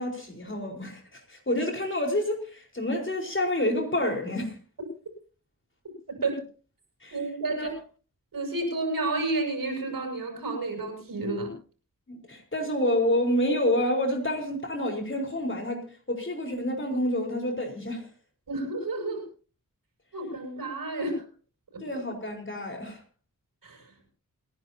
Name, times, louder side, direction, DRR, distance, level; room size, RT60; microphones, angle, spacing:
voice 1, 0.0-4.5 7.0-7.2 7.6-7.7 12.1-18.1 21.8-23.0, left 1 dB, 35° left, 4.6 m, -28 dB
voice 2, 7.1-7.7 8.3-11.5 18.5-19.2 20.1-21.2 21.7-21.8 23.6-23.9, right 2 dB, 85° right, 7.0 m, -30 dB
28.5 x 11.0 x 2.8 m
wide cardioid pair, 60°, 34 cm